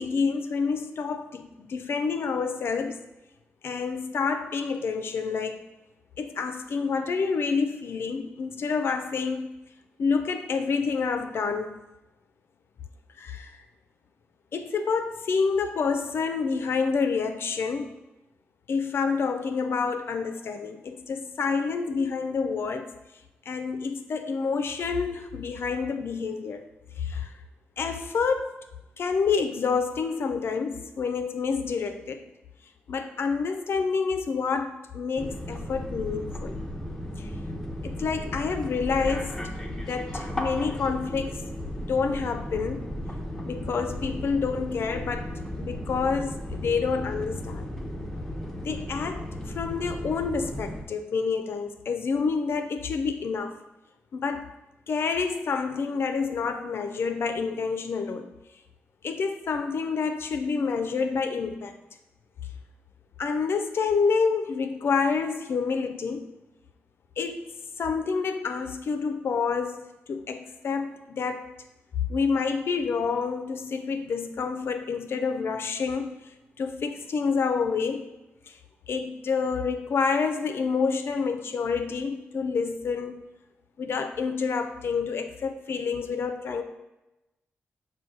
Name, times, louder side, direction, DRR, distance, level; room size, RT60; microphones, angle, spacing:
voice 1, 0.0-3.0 3.6-5.6 6.2-9.5 10.0-11.7 13.2-13.6 14.5-17.9 18.7-22.9 23.5-26.6 27.0-27.3 27.8-28.5 29.0-32.2 32.9-36.6 37.2-37.3 37.8-39.4 39.7-41.4 41.9-42.8 43.4-45.3 45.6-47.7 48.6-53.6 54.1-54.5 54.9-58.3 59.0-61.7 63.2-66.3 67.2-67.5 67.8-69.8 70.1-71.5 72.1-76.2 76.6-78.1 78.5-78.6 78.9-83.2 83.8-86.6, left 5 dB, 60° left, 7 dB, 0.4 m, -28 dB
sound 1, 35.2-50.8, left 1 dB, 5° left, 0.6 m, -35 dB
5.9 x 2.2 x 3.8 m, 0.97 s
cardioid pair, 105°, 5 cm